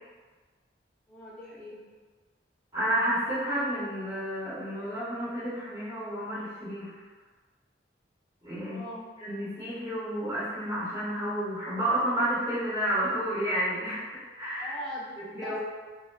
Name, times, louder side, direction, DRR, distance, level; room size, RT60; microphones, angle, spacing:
voice 1, 1.1-1.8 8.6-9.1 14.6-15.6, equal, 5° left, -8 dB, 0.7 m, -41 dB
voice 2, 2.7-6.9 8.4-8.8 9.2-14.1 14.4-14.8 15.2-15.6, right 1 dB, 20° right, -11 dB, 1.4 m, -30 dB
4.8 x 2.2 x 2.3 m, 1.4 s
head